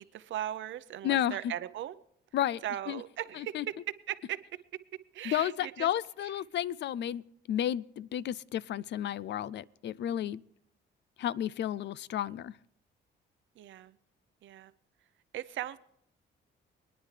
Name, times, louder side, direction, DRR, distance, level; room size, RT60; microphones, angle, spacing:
voice 1, 0.0-1.9 2.6-3.5 4.1-4.4 5.1-5.9 13.6-14.0 14.4-14.7 15.3-15.8, right 12 dB, 70° right, 0.7 m, -38 dB
voice 2, 1.0-1.4 2.3-3.0 3.4-3.7 5.2-7.2 7.5-10.4 11.2-12.5, left 11 dB, 65° left, 0.4 m, -32 dB
25.0 x 10.0 x 3.3 m
cardioid pair, 90°, 20 cm